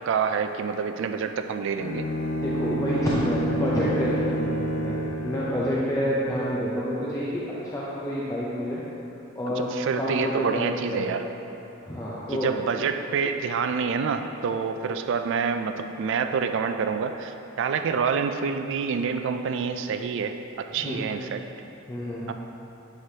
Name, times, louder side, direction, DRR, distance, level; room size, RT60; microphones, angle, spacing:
voice 1, 0.1-2.1 9.5-11.3 12.3-21.4 22.3-22.4, right 6 dB, 65° right, 7 dB, 0.3 m, -27 dB
Bowed string instrument, 1.8-5.8, equal, 90° left, 0.6 m, -28 dB
voice 2, 2.4-8.8 9.3-9.7 10.0-11.1 11.8-12.5 20.8-21.1 21.9-22.3, equal, 15° left, -8 dB, 0.5 m, -28 dB
7.6 x 4.9 x 2.8 m, 2.9 s
head